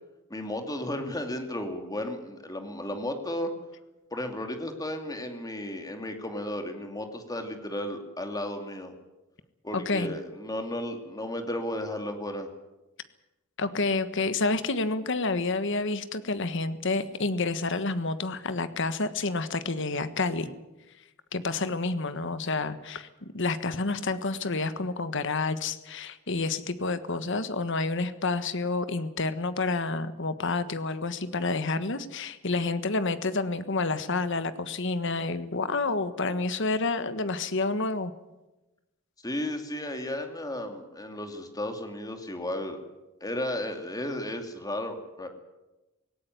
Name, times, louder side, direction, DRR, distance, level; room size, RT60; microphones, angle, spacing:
voice 1, 0.3-3.5 4.1-8.9 9.6-12.5 39.2-42.8 43.2-45.3, left 1 dB, 20° left, 5 dB, 2.5 m, -34 dB
voice 2, 9.7-10.1 13.6-20.5 21.3-38.1, left 3 dB, 60° left, 12 dB, 1.4 m, -29 dB
18.5 x 17.5 x 9.4 m, 1.0 s
head